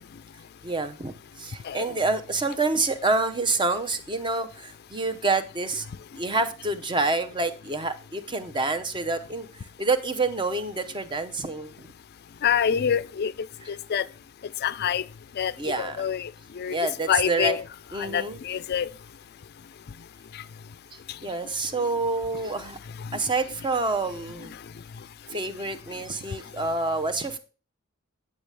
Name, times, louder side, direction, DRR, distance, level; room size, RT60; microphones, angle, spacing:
voice 1, 0.6-5.9 6.2-11.9 13.6-13.7 15.6-16.1 16.7-17.6 17.9-18.4 20.9-22.8 23.1-24.5 25.3-27.4, right 3 dB, 20° right, 0.7 m, -28 dB
voice 2, 12.4-13.3 13.9-14.0 14.6-15.0 15.4-15.5 15.8-16.3 16.6-16.7 17.1-17.6 18.0-18.9, left 8 dB, 45° left, 0.4 m, -25 dB
8.6 x 8.3 x 3.3 m
head